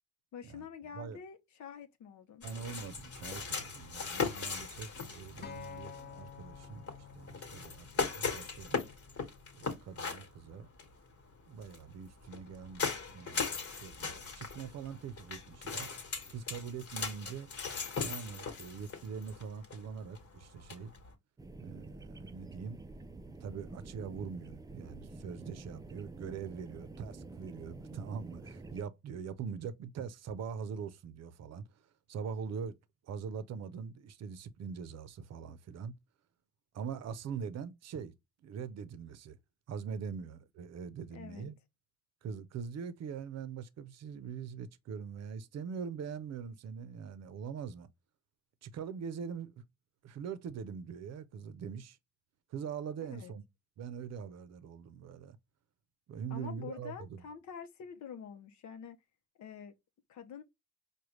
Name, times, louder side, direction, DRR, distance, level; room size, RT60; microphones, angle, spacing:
voice 1, 0.3-2.5 41.1-41.5 53.1-53.3 56.3-59.0 59.4-59.7 60.1-60.4, left 7 dB, 70° left, 0.7 m, -47 dB
sound 1, 2.4-21.1, left 5 dB, 50° left, 1.3 m, -39 dB
voice 2, 2.4-6.9 7.1-8.8 9.5-10.7 11.5-15.9 16.3-17.5 18.0-20.9 21.6-22.8 23.4-31.7 32.1-32.7 33.1-35.9 36.7-38.1 38.4-39.4 39.7-41.5 42.2-47.9 48.6-49.6 50.0-52.0 52.5-53.4 53.8-55.4 56.1-57.2, right 6 dB, 60° right, 0.6 m, -43 dB
Acoustic guitar, 5.4-9.7 10.5-10.6, left 7 dB, 35° left, 0.6 m, -51 dB
sound 2, 21.4-28.8, right 2 dB, 15° right, 0.3 m, -48 dB
4.8 x 2.3 x 3.0 m
cardioid pair, 90°, 30 cm